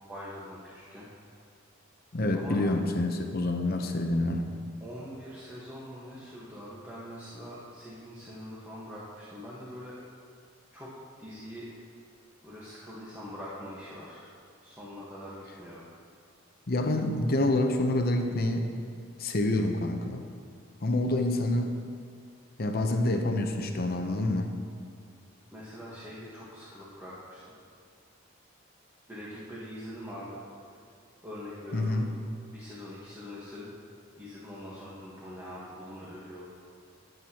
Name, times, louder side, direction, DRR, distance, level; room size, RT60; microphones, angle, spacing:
voice 1, 0.1-1.1 2.3-2.6 4.8-10.0 10.7-10.9 11.2-11.7 12.4-14.3 14.6-15.8 25.5-27.6 29.1-30.4 31.2-32.0 32.5-33.7 34.2-36.4, equal, 10° right, -9 dB, 1.4 m, -43 dB
voice 2, 2.1-4.5 16.7-18.7 19.2-20.2 20.8-21.7 22.6-24.5 31.7-32.1, left 1 dB, 45° left, 5 dB, 0.8 m, -27 dB
19.5 x 8.0 x 3.0 m, 2.2 s
head